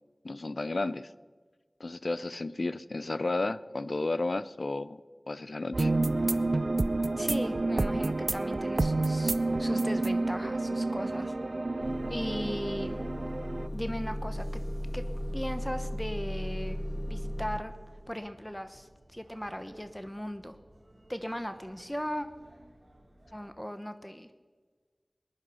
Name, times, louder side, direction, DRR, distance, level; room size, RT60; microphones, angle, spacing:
voice 1, 0.2-1.1 1.8-5.9, left 2 dB, 75° left, 16 dB, 0.4 m, -33 dB
sound 1, 5.7-23.5, right 1 dB, 55° right, 3.2 m, -50 dB
sound 2, 5.7-13.7, right 2 dB, 70° right, 0.5 m, -29 dB
voice 2, 7.2-9.3 9.6-11.3 12.1-13.0 13.7-14.5 14.9-15.0 15.3-16.8 17.1-17.7 18.1-20.6 21.1-22.3 23.3-24.3, equal, 10° left, 9 dB, 0.9 m, -37 dB
Motor vehicle (road) / Engine starting / Idling, 11.8-17.6, equal, 35° left, 1.5 m, -36 dB
20.0 x 11.0 x 5.5 m, 1.5 s
wide cardioid pair, 50°, 0 cm